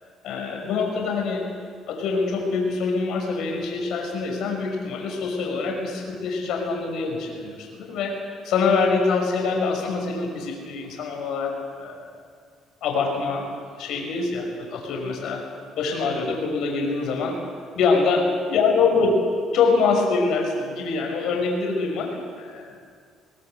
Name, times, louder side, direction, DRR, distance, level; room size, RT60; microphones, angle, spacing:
voice 1, 0.2-1.5 1.9-8.2 8.4-12.1 12.8-13.5 13.8-15.4 15.7-17.4 17.8-19.2 19.5-22.7, left 4 dB, 75° left, 1 dB, 5.5 m, -24 dB
21.0 x 20.5 x 8.0 m, 2.1 s
cardioid pair, 90°, 0 cm